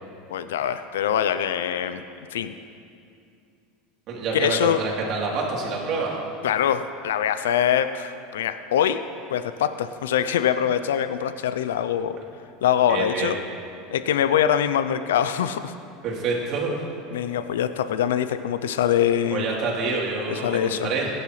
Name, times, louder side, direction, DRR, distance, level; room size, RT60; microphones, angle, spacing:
voice 1, 0.3-2.0 2.3-2.5 4.3-4.8 6.4-9.0 9.3-12.2 12.6-13.4 13.9-15.7 17.1-19.5 20.3-20.9, left 9 dB, 85° left, 11 dB, 0.4 m, -23 dB
voice 2, 4.1-6.2 12.9-13.3 16.0-16.9 19.3-21.1, right 4 dB, 50° right, -3 dB, 3.2 m, -27 dB
17.0 x 11.0 x 3.2 m, 2.5 s
supercardioid pair, 100°, 0 cm